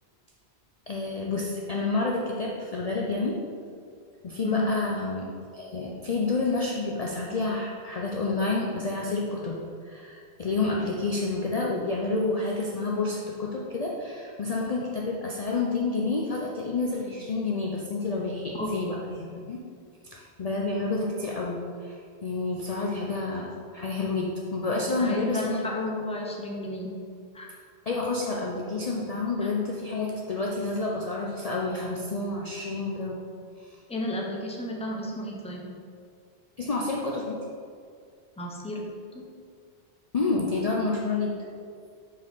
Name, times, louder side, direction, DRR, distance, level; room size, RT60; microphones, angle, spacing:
voice 1, 0.9-3.4 4.2-5.3 5.5-19.6 20.1-25.9 27.9-33.2 33.6-33.7 36.6-37.4 40.1-41.4, left 3 dB, 45° left, -2 dB, 0.6 m, -29 dB
voice 2, 24.9-26.9 27.3-27.5 29.4-29.5 33.9-35.6 38.4-38.8 39.1-39.3, left 1 dB, 5° left, -2 dB, 0.7 m, -33 dB
5.0 x 4.2 x 5.5 m, 2.2 s
omnidirectional pair, 1.1 m